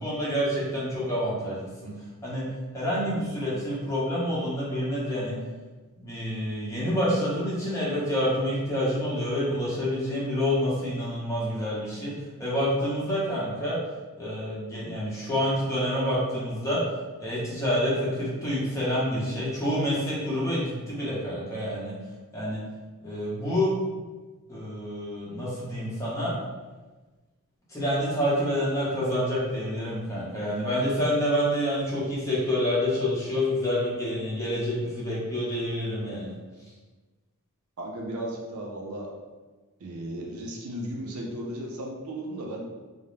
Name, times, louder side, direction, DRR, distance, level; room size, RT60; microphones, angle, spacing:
voice 1, 0.0-1.9 2.2-2.4 2.7-5.3 6.0-12.1 12.4-13.8 14.2-16.8 17.2-21.9 22.3-22.6 23.0-23.7 24.5-26.3 27.7-36.3, equal, 15° left, -7 dB, 0.8 m, -28 dB
voice 2, 37.8-39.1 39.8-42.6, right 1 dB, 70° right, -1 dB, 0.5 m, -35 dB
2.4 x 2.0 x 3.1 m, 1.3 s
head